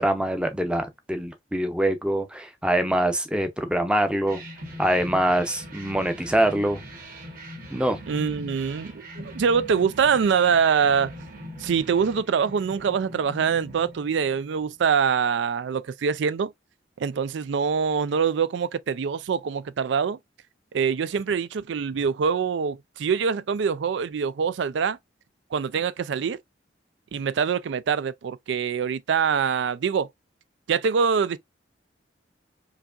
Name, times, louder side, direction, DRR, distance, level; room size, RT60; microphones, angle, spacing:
voice 1, 0.0-4.4 4.8-6.8 7.7-8.0, right 1 dB, 5° right, 0.6 m, -24 dB
sound 1, 4.3-14.8, equal, 45° right, 1.6 m, -42 dB
voice 2, 8.1-11.1 11.6-16.5 17.0-20.2 20.7-25.0 25.5-26.4 27.1-30.1 30.7-31.4, right 6 dB, 75° right, 0.4 m, -24 dB
4.6 x 2.8 x 2.4 m
head